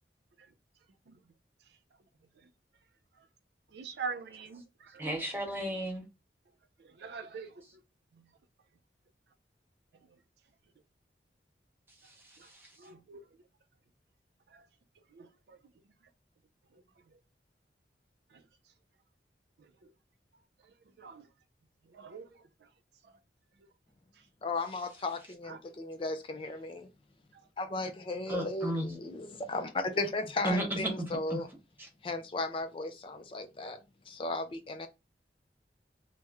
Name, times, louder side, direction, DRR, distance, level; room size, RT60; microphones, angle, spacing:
voice 1, 3.7-5.1 6.8-7.5 12.4-12.5 12.8-13.2 14.5-14.6 15.1-15.6 21.0-21.3 21.9-22.3 25.5-25.6 27.3-27.4, right 5 dB, 70° right, 0.4 m, -43 dB
voice 2, 5.0-6.0 12.0-12.7 28.3-28.9 30.4-31.4 31.8-31.9, right 1 dB, 10° right, 0.7 m, -34 dB
voice 3, 24.4-26.9 27.6-31.5 32.0-33.8 34.1-34.9, left 2 dB, 30° left, 0.3 m, -35 dB
3.0 x 2.1 x 3.4 m
head